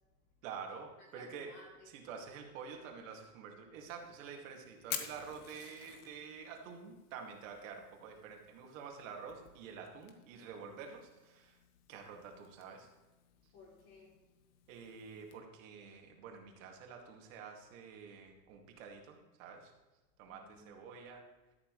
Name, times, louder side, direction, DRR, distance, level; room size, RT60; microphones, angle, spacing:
voice 1, 0.4-1.5 1.9-11.6 11.9-12.9 14.7-19.7 20.2-21.2, right 6 dB, 55° right, 2 dB, 2.5 m, -48 dB
voice 2, 1.0-2.1 13.5-14.2 20.2-20.7, left 3 dB, 35° left, -4 dB, 3.3 m, -58 dB
Fire, 3.9-15.4, left 9 dB, 65° left, 1.6 m, -51 dB
12.5 x 11.0 x 3.3 m, 1.2 s
supercardioid pair, 160°, 47 cm